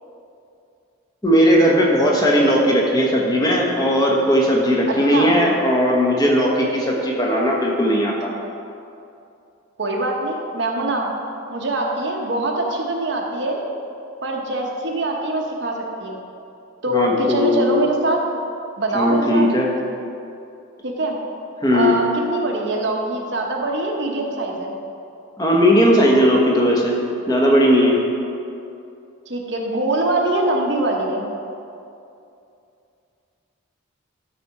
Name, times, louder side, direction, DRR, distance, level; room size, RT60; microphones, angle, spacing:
voice 1, 1.2-8.3 16.9-17.8 18.9-19.7 21.6-21.9 25.4-27.0 27.3-28.0, equal, 20° left, -2 dB, 1.0 m, -17 dB
voice 2, 9.8-11.1 11.5-13.6 14.2-16.2 16.8-18.2 18.8-19.4 20.8-21.1 21.7-24.7 29.3-31.3, right 2 dB, 55° right, 0 dB, 0.9 m, -23 dB
12.5 x 4.3 x 4.8 m, 2.6 s
head